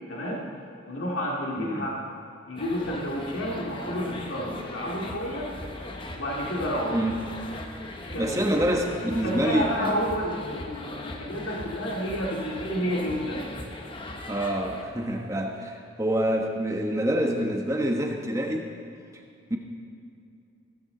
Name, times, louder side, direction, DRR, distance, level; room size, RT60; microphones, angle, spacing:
voice 1, 0.1-0.4 0.9-2.0 2.5-5.5 6.1-7.0 8.1-8.4 9.0-13.4, equal, 85° left, -3 dB, 2.2 m, -30 dB
sound 1, 2.6-14.8, left 1 dB, 25° left, 0.9 m, -39 dB
voice 2, 6.9-7.3 8.2-9.9 14.3-18.7 19.5-19.6, equal, 15° right, 1 dB, 1.1 m, -26 dB
15.5 x 13.5 x 3.9 m, 2.5 s
head